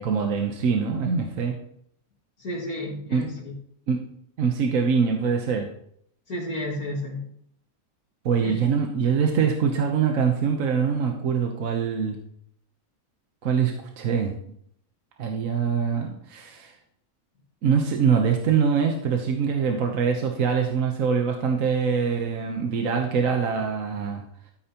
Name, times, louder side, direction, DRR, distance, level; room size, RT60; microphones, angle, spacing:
voice 1, 0.0-1.6 3.1-3.3 3.9-4.1 4.4-5.7 8.2-12.2 13.4-14.3 15.2-16.7 17.6-24.2, right 6 dB, 70° right, 2 dB, 1.4 m, -24 dB
voice 2, 2.4-3.5 6.3-7.3 8.4-8.5, left 1 dB, 85° left, -6 dB, 2.5 m, -32 dB
13.5 x 8.7 x 3.0 m, 0.69 s
omnidirectional pair, 1.5 m